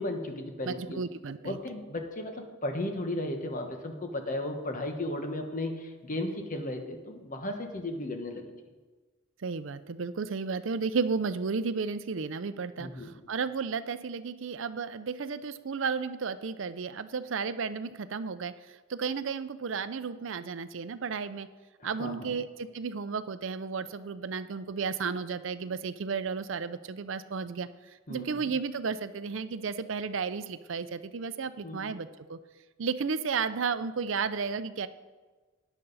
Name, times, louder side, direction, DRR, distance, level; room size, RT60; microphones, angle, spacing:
voice 1, 0.0-1.0 1.4-8.5 12.8-13.1 21.8-22.4 28.1-28.5 31.6-31.9, left 1 dB, 40° left, 5 dB, 1.2 m, -35 dB
voice 2, 0.6-1.6 9.4-18.5 18.9-21.5 21.8-27.7 28.1-32.4 32.8-34.9, right 5 dB, 65° right, 13 dB, 0.5 m, -33 dB
13.5 x 9.9 x 4.0 m, 1.3 s
head